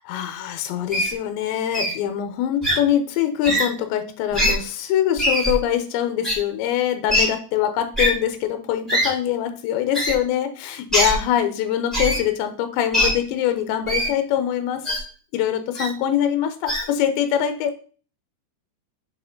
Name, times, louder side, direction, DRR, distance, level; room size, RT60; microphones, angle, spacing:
voice 1, 0.1-14.8 15.3-17.8, left 10 dB, 80° left, 8 dB, 2.9 m, -23 dB
Wild animals, 0.9-1.1 1.7-1.9 2.6-2.7 3.4-3.6 4.3-4.5 5.2-5.5 6.2-6.3 7.1-7.2 7.9-8.1 8.9-9.1 9.9-10.1 10.9-11.1 11.9-12.2 12.9-13.1 13.9-14.1 14.8-15.0 15.7-15.9 16.7-16.8, equal, ahead, 2.3 m, -21 dB
7.1 x 4.7 x 3.8 m, 0.40 s
omnidirectional pair, 5.4 m